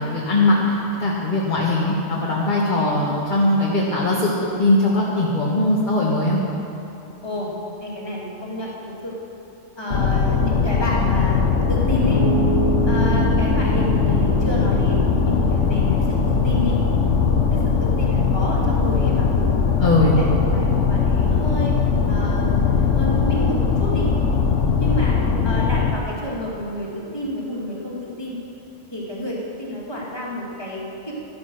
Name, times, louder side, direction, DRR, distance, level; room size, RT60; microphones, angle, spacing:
voice 1, 0.0-6.4 19.8-20.2, left 2 dB, 40° left, -5 dB, 1.5 m, -20 dB
voice 2, 7.8-8.7 9.0-9.2 9.8-12.2 12.8-16.8 17.5-19.6 20.0-21.8 22.1-24.1 24.8-25.2 25.4-28.4 28.9-31.1, equal, 20° left, -5 dB, 2.5 m, -29 dB
sound 1, 9.9-25.9, left 5 dB, 70° left, 1.3 m, -20 dB
Piano, 12.0-24.2, right 3 dB, 40° right, 3.8 m, -30 dB
13.0 x 10.5 x 6.3 m, 2.8 s
omnidirectional pair, 1.3 m